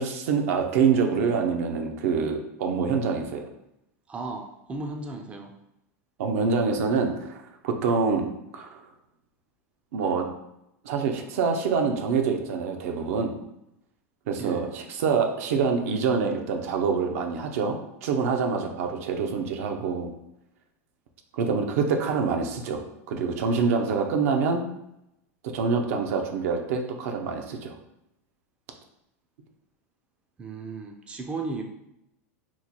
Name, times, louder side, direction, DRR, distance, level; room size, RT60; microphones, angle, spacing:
voice 1, 0.0-3.5 6.2-8.3 8.5-8.9 9.9-10.3 10.8-13.4 14.3-20.1 21.3-24.6 25.4-27.8, right 5 dB, 75° right, 4 dB, 0.5 m, -26 dB
voice 2, 4.1-5.5 14.4-14.7 30.4-31.6, right 3 dB, 15° right, 3 dB, 0.3 m, -35 dB
3.0 x 2.1 x 3.9 m, 0.84 s
supercardioid pair, 130°, 8 cm